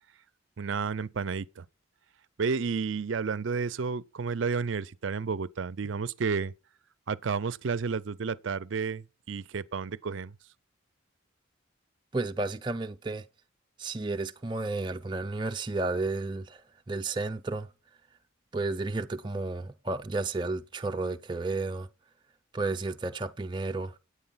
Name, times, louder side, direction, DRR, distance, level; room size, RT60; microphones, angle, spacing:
voice 1, 0.6-1.7 2.4-6.5 7.1-10.3, right 5 dB, 70° right, 0.5 m, -31 dB
voice 2, 12.1-13.3 13.8-17.7 18.5-21.9 22.5-24.0, right 3 dB, 25° right, 0.5 m, -32 dB
9.7 x 8.3 x 5.6 m
head